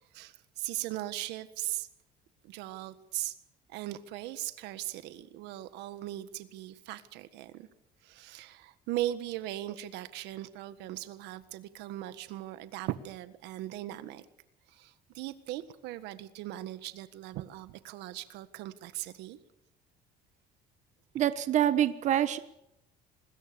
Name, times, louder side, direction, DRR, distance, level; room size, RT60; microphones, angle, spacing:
voice 1, 0.1-1.9 2.4-3.4 3.7-7.7 8.0-14.2 14.7-19.4, right 14 dB, 85° right, 1.6 m, -39 dB
voice 2, 21.1-22.4, right 11 dB, 45° right, 1.2 m, -26 dB
27.0 x 21.0 x 6.9 m
cardioid pair, 155°, 17 cm